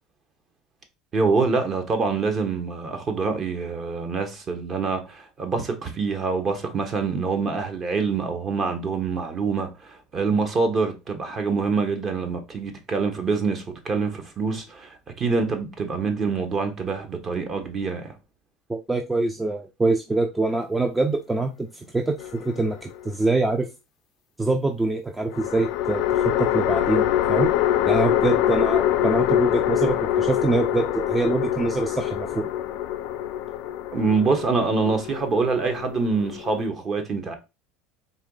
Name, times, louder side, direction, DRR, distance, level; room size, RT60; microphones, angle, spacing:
voice 1, 1.1-18.1 33.9-37.4, right 4 dB, 35° right, 1.1 m, -25 dB
voice 2, 18.7-22.1 22.4-23.7 24.4-26.0 26.4-27.5 27.9-32.5, right 2 dB, 10° right, 0.5 m, -24 dB
sound 1, 22.2-23.1 25.3-36.7, left 12 dB, 65° left, 0.5 m, -24 dB
4.2 x 3.1 x 3.8 m
supercardioid pair, 110°, 0 cm